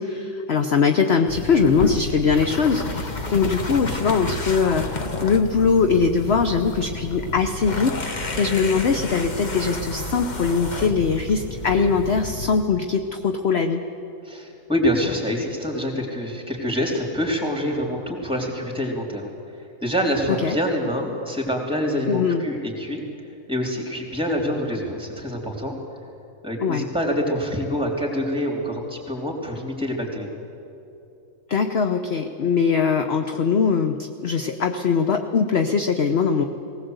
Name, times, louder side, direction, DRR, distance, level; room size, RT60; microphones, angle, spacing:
voice 1, 0.0-13.8 20.4-20.6 22.1-22.4 26.6-26.8 31.5-36.4, left 5 dB, 50° left, 6 dB, 1.0 m, -21 dB
sound 1, 1.3-12.6, left 2 dB, 30° left, 1.2 m, -30 dB
voice 2, 14.2-19.3 19.6-23.0 23.5-25.8 26.4-30.3, equal, 5° right, 1 dB, 3.4 m, -26 dB
19.0 x 19.0 x 8.0 m, 2.8 s
omnidirectional pair, 1.6 m